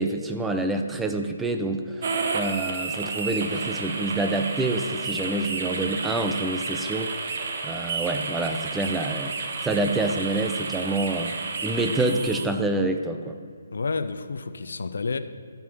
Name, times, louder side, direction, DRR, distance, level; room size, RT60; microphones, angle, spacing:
voice 1, 0.0-11.3 11.6-13.4, right 2 dB, 5° right, 5 dB, 0.6 m, -27 dB
sound 1, 2.0-12.5, right 4 dB, 50° right, 1.2 m, -31 dB
voice 2, 13.7-15.2, left 4 dB, 70° left, 11 dB, 0.6 m, -30 dB
14.0 x 5.6 x 6.0 m, 2.2 s
figure-of-eight pair, 145°, 0 cm